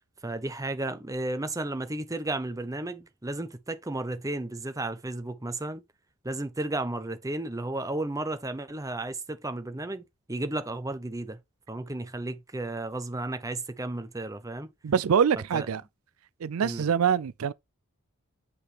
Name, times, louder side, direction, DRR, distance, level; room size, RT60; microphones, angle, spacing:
voice 1, 0.2-5.8 6.2-11.4 11.7-14.7 15.5-15.7 16.6-16.8, right 2 dB, 15° right, 0.8 m, -33 dB
voice 2, 14.8-15.8 16.4-17.5, right 7 dB, 85° right, 0.4 m, -24 dB
8.2 x 5.5 x 3.4 m
head